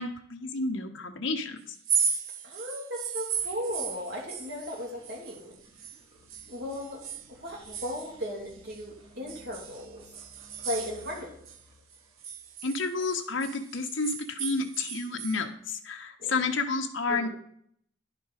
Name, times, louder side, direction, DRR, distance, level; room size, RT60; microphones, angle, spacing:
voice 1, 0.0-1.6 12.6-17.3, left 3 dB, 70° left, 4 dB, 0.9 m, -30 dB
sound 1, 1.7-6.0 6.3-8.8 9.3-11.6 11.9-15.4, right 7 dB, 85° right, 0.8 m, -35 dB
voice 2, 2.4-5.6 6.5-7.0 7.3-10.0 10.6-11.3 16.2-16.4 17.1-17.3, left 1 dB, 55° right, -2 dB, 2.6 m, -36 dB
sound 2, 3.3-12.5, equal, 25° right, 1.7 m, -57 dB
10.5 x 4.2 x 4.9 m, 0.65 s
head